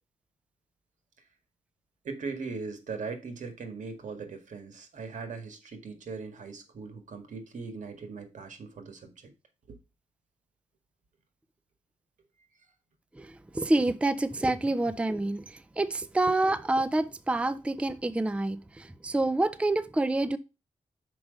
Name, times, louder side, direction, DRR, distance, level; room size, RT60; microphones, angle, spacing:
voice 1, 2.0-9.3 9.7-9.8, right 4 dB, 80° right, 1.8 m, -39 dB
voice 2, 13.1-20.4, right 2 dB, 10° right, 0.4 m, -28 dB
6.1 x 5.1 x 5.1 m
wide cardioid pair, 110°, 13 cm